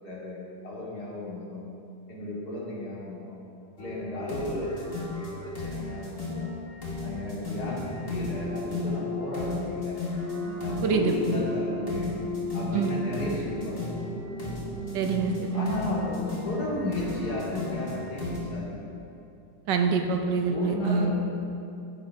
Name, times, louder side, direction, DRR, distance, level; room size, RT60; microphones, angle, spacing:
voice 1, 0.0-1.6 2.1-3.4 3.8-6.5 7.0-10.0 10.6-12.1 12.5-13.9 15.5-18.9 20.4-21.1, left 1 dB, 65° left, -6 dB, 3.0 m, -34 dB
sound 1, 3.8-18.4, left 3 dB, 35° left, 1.9 m, -34 dB
sound 2, 10.4-15.8, right 7 dB, 60° right, 0.7 m, -41 dB
voice 2, 10.8-11.1 12.7-13.0 14.9-15.7 19.7-21.1, right 5 dB, 80° right, 4 dB, 1.5 m, -26 dB
15.0 x 5.8 x 4.7 m, 2.7 s
omnidirectional pair, 1.9 m